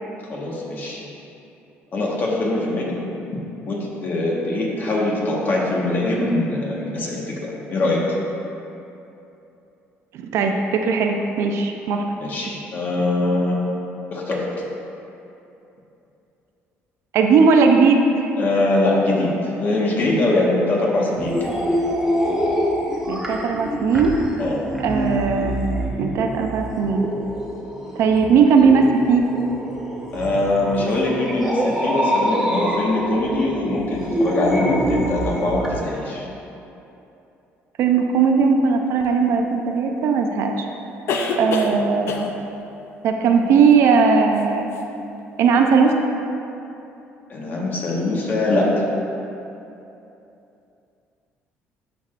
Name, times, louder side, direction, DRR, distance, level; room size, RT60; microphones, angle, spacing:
voice 1, 0.3-1.0 1.9-2.9 3.7-8.0 12.2-13.6 14.1-14.4 18.4-19.3 19.6-21.5 24.4-24.6 30.1-36.3 47.3-48.9, left 2 dB, 40° left, -3 dB, 1.4 m, -22 dB
voice 2, 10.1-12.0 17.1-18.3 23.1-24.1 24.8-27.1 28.0-29.3 37.8-40.7 41.4-42.3 43.0-44.7 45.4-46.0, right 5 dB, 70° right, 4 dB, 0.6 m, -18 dB
sound 1, 21.1-35.7, equal, 10° right, 0.9 m, -26 dB
sound 2, 39.0-39.1 41.1-41.8 42.1-42.4 44.4-44.5 44.7-44.8, left 4 dB, 60° left, 0.6 m, -25 dB
12.0 x 4.7 x 2.5 m, 2.8 s
cardioid pair, 115°, 5 cm